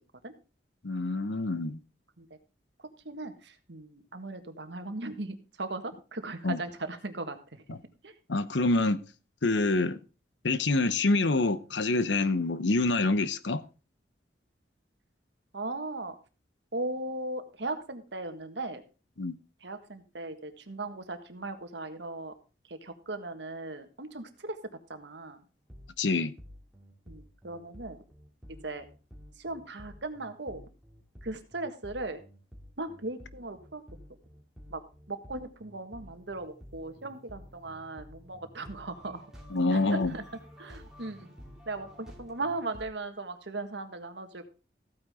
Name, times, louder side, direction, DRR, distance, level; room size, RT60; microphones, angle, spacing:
voice 1, 0.8-1.8 6.4-6.6 7.7-7.8 8.3-9.0 9.4-10.0 10.4-13.6 19.2-19.3 26.0-26.3 39.5-40.1, left 2 dB, 85° left, 0.8 m, -26 dB
voice 2, 3.0-7.6 8.0-8.1 9.8-9.9 15.5-16.2 16.7-18.8 19.6-22.3 22.7-24.6 24.9-25.4 27.1-28.0 28.5-28.8 29.4-30.6 31.2-32.2 32.8-33.8 34.7-34.8 35.1-39.3 39.7-40.2 40.6-41.3 41.6-44.4, right 2 dB, 80° right, 1.6 m, -38 dB
sound 1, 25.7-42.9, equal, 5° right, 2.6 m, -51 dB
15.0 x 9.0 x 3.7 m
head